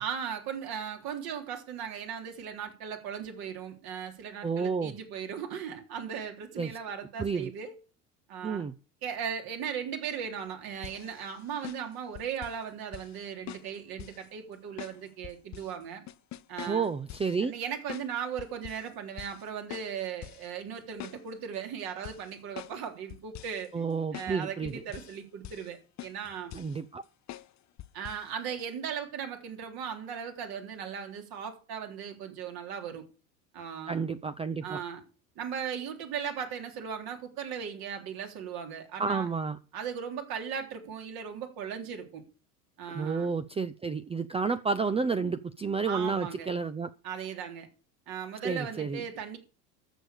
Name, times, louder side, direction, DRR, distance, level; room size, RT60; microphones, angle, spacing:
voice 1, 0.0-7.8 8.3-8.7 9.0-16.0 16.5-16.9 17.4-23.8 24.1-26.5 27.9-33.0 33.5-34.0 34.6-35.0 35.4-39.3 39.7-42.2 42.8-43.3 45.8-46.5 47.0-47.7 48.1-49.4, right 7 dB, 50° right, 3.5 m, -37 dB
voice 2, 4.4-4.9 6.6-6.7 7.2-7.5 8.4-8.7 16.7-17.5 23.7-24.7 26.5-27.0 33.9-34.8 39.0-39.6 42.9-46.9 48.4-49.0, right 5 dB, 15° right, 0.6 m, -30 dB
sound 1, 10.8-12.6 12.9-13.2 13.5-14.3 14.8-15.7 16.1-17.4 17.9-18.1 18.4-18.9 19.2-19.4 19.7-20.5 20.8-21.5 22.0-22.8 23.1-23.7 24.1-24.3 24.7-25.2 25.4-25.7 26.0-26.8 27.3-27.5 27.8-28.2 28.6-28.7, left 14 dB, 35° left, 0.9 m, -44 dB
13.5 x 7.0 x 6.7 m
hypercardioid pair, 75°, 46 cm